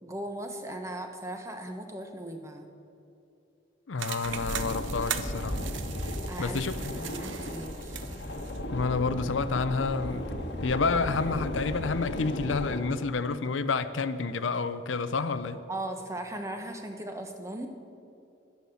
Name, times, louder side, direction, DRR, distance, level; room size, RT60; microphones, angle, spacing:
voice 1, 0.0-2.7 6.3-6.6 6.9-8.1 15.5-17.7, right 1 dB, 15° right, 1.0 m, -38 dB
voice 2, 3.9-5.6 6.4-7.1 8.7-10.2 10.6-15.6, left 4 dB, 85° left, 0.6 m, -29 dB
sound 1, 4.0-8.6, right 9 dB, 80° right, 0.7 m, -39 dB
sound 2, 4.2-12.8, left 1 dB, 65° left, 1.2 m, -35 dB
11.5 x 10.5 x 7.0 m
head